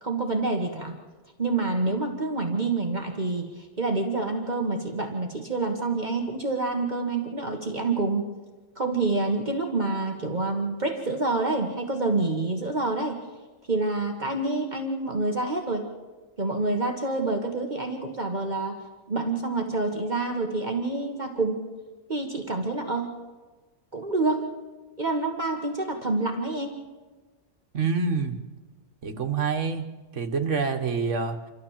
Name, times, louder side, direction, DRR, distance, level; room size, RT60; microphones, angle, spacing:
voice 1, 0.0-1.0 1.4-8.3 8.8-13.2 13.7-15.9 16.4-18.8 19.1-21.7 22.1-23.1 23.9-24.5 25.0-26.8, right 3 dB, 40° right, 2 dB, 1.6 m, -27 dB
voice 2, 27.7-28.4 29.0-29.8 30.1-31.4, right 5 dB, 75° right, 6 dB, 1.7 m, -26 dB
28.0 x 13.0 x 7.4 m, 1.3 s
omnidirectional pair, 1.3 m